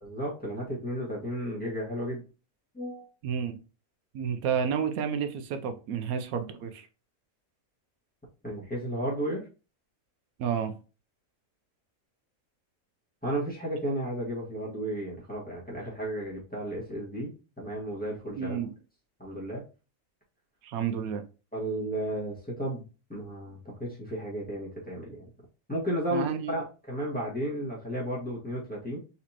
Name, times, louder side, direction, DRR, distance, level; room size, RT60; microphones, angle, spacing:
voice 1, 0.0-2.2 2.7-3.1 8.4-9.5 13.2-17.3 17.6-18.6 19.2-19.6 21.5-22.8 23.1-25.2 25.7-29.0, right 1 dB, 5° left, -6 dB, 1.6 m, -33 dB
voice 2, 3.2-3.6 4.1-6.9 10.4-10.7 18.4-18.7 20.6-21.2 26.1-26.6, right 7 dB, 85° right, 8 dB, 1.1 m, -30 dB
4.2 x 4.1 x 2.9 m, 0.33 s
omnidirectional pair, 1.5 m